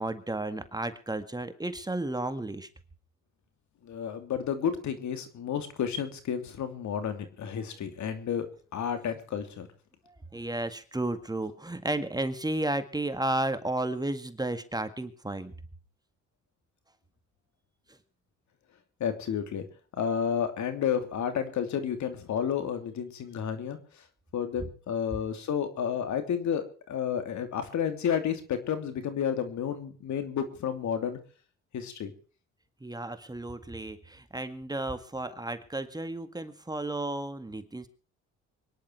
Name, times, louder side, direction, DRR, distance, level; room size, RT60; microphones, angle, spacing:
voice 1, 0.0-2.7 10.0-15.5 32.8-37.9, right 2 dB, 15° right, 9 dB, 1.8 m, -33 dB
voice 2, 3.8-8.5 8.7-9.7 19.0-19.6 19.9-23.8 24.3-31.2 31.7-32.1, left 8 dB, 70° left, 8 dB, 3.0 m, -31 dB
24.5 x 10.5 x 4.6 m, 0.41 s
cardioid pair, 90°, 30 cm